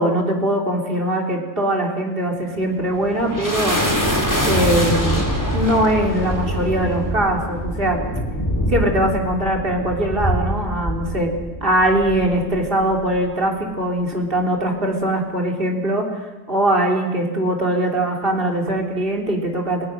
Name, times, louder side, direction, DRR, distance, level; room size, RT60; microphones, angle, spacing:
voice 1, 0.0-3.8 4.4-5.3 5.5-8.0 8.7-11.3 11.6-16.1 16.5-19.9, right 1 dB, 45° right, 0 dB, 3.6 m, -21 dB
sound 1, 2.5-13.3, equal, 15° left, 4.2 m, -24 dB
30.0 x 18.0 x 6.5 m, 1.1 s
omnidirectional pair, 1.3 m